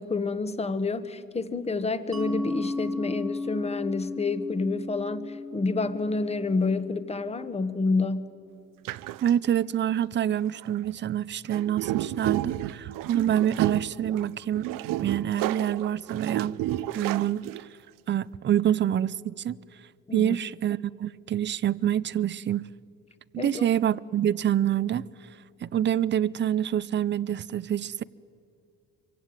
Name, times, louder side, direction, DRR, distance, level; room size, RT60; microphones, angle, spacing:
voice 1, 0.0-8.3 20.1-20.4 23.4-23.7, left 3 dB, 20° left, 1.3 m, -28 dB
Mallet percussion, 2.1-7.5, left 3 dB, ahead, 1.9 m, -35 dB
sound 1, 8.8-9.3 10.6-10.9 11.4-17.9, right 14 dB, 70° right, 0.8 m, -31 dB
voice 2, 9.2-14.7 15.0-16.6 16.9-17.7 18.1-19.6 20.1-22.6 23.3-25.1 25.6-28.0, right 10 dB, 35° right, 0.6 m, -26 dB
25.5 x 24.0 x 9.6 m
cardioid pair, 120°, 34 cm